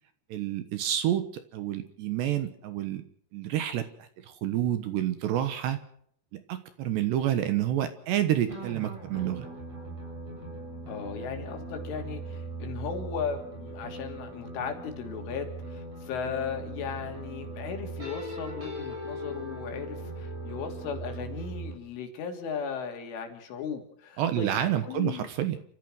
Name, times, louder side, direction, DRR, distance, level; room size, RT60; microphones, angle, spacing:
voice 1, 0.3-3.0 3.3-5.8 6.3-9.5 24.2-25.6, right 11 dB, 70° right, 10 dB, 3.0 m, -29 dB
sound 1, 8.4-21.7, right 2 dB, 30° right, 8.5 m, -39 dB
voice 2, 10.9-24.5 24.8-25.3, left 6 dB, 70° left, 4 dB, 5.3 m, -36 dB
29.0 x 15.0 x 6.4 m, 0.63 s
omnidirectional pair, 5.8 m